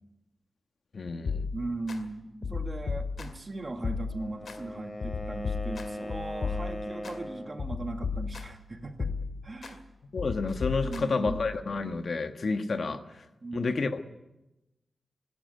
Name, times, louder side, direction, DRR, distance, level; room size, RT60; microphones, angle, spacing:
voice 1, 0.9-1.5 10.1-13.2 13.5-14.0, left 3 dB, 55° left, 7 dB, 1.3 m, -30 dB
sound 1, 1.3-2.0 2.4-3.5 3.8-4.6 5.0-7.2 7.6-8.6 9.0-9.7 10.2-11.6, left 5 dB, 80° left, 2.2 m, -35 dB
voice 2, 1.5-9.1 9.4-9.8 10.8-11.4 12.8-13.0 13.4-13.7, right 2 dB, 35° right, 5 dB, 1.9 m, -38 dB
Wind instrument woodwind instrument, 4.0-7.6, left 1 dB, 25° left, 4.1 m, -39 dB
25.0 x 12.0 x 9.4 m, 0.97 s
wide cardioid pair, 145°, 0 cm